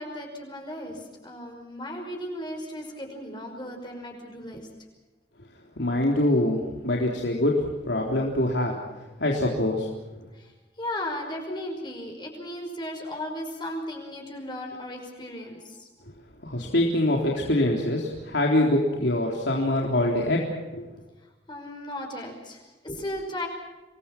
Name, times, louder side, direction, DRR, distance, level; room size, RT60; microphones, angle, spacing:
voice 1, 0.0-4.7 10.3-10.5 10.8-15.9 21.5-23.5, left 1 dB, 25° left, 2 dB, 5.6 m, -36 dB
voice 2, 5.8-8.8 9.2-9.9 16.4-20.4 20.7-20.9, left 1 dB, 90° left, -1 dB, 3.7 m, -24 dB
28.0 x 21.5 x 6.0 m, 1.1 s
head